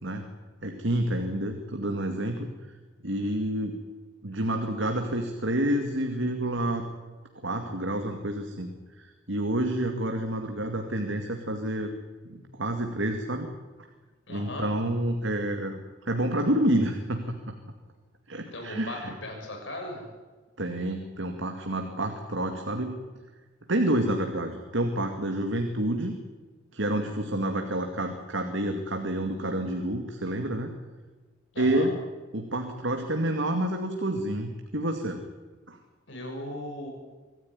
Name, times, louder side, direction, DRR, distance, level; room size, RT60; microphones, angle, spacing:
voice 1, 0.6-2.5 3.0-3.8 4.2-6.9 7.4-8.7 9.0-11.9 12.3-13.5 14.3-17.5 18.3-19.1 20.6-23.0 23.7-26.2 26.7-30.7 31.6-31.9 32.3-35.2 35.7-35.8, right 1 dB, 65° right, 4 dB, 2.3 m, -29 dB
voice 2, 14.3-14.7 18.5-20.0 31.5-31.9 36.1-36.9, left 1 dB, 65° left, 1 dB, 6.8 m, -37 dB
25.5 x 14.5 x 9.8 m, 1.3 s
head